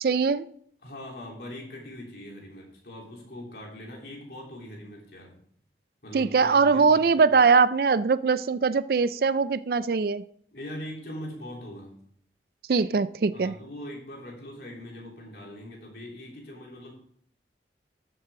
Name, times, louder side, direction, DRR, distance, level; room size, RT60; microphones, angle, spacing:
voice 1, 0.0-0.4 6.1-10.2 12.7-13.5, right 5 dB, 55° right, 16 dB, 0.4 m, -22 dB
voice 2, 0.8-5.4 6.0-7.3 10.5-11.9 13.3-16.9, left 1 dB, 60° left, -2 dB, 3.4 m, -41 dB
13.0 x 7.8 x 3.7 m, 0.63 s
head